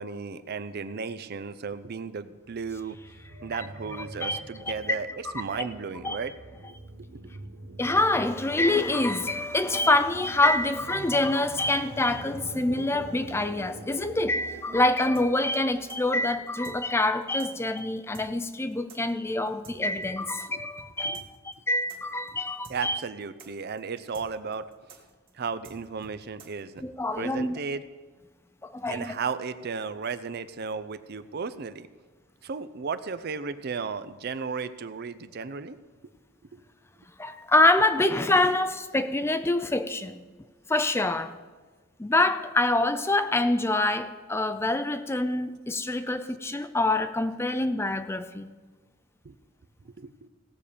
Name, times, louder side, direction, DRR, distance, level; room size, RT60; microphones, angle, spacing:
voice 1, 0.0-3.0 3.4-5.1 5.3-6.3 6.6-6.7 7.1-7.5 20.5-20.6 21.0-21.2 22.7-24.7 25.3-26.8 27.2-27.8 28.9-31.9 32.4-35.8 36.5-36.6 49.2-49.4 49.8-50.3, right 5 dB, 50° right, 12 dB, 0.5 m, -34 dB
sound 1, 2.4-16.6, right 2 dB, 75° right, 1.0 m, -45 dB
voice 2, 7.8-23.0 26.8-27.6 28.6-29.1 37.2-40.2 40.7-41.3 42.0-48.5, left 2 dB, 10° left, 11 dB, 0.5 m, -26 dB
sound 2, 15.1-20.5 20.8-20.9 21.1-26.9, right 3 dB, 25° right, 1.7 m, -50 dB
17.0 x 6.9 x 5.1 m, 1.4 s
head